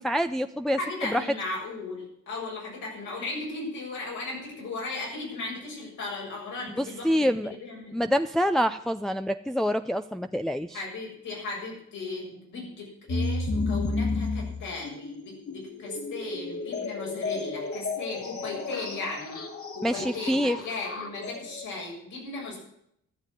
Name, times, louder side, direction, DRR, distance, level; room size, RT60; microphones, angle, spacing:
voice 1, 0.0-1.2 6.8-7.5 7.9-10.8 19.8-20.6, equal, ahead, 7 dB, 0.5 m, -26 dB
voice 2, 0.8-8.0 10.7-19.4 19.7-22.6, left 3 dB, 80° left, -3 dB, 7.2 m, -36 dB
sound 1, 13.1-21.6, left 3 dB, 50° left, 2.1 m, -32 dB
13.0 x 7.2 x 9.7 m, 0.72 s
cardioid pair, 90°, 30 cm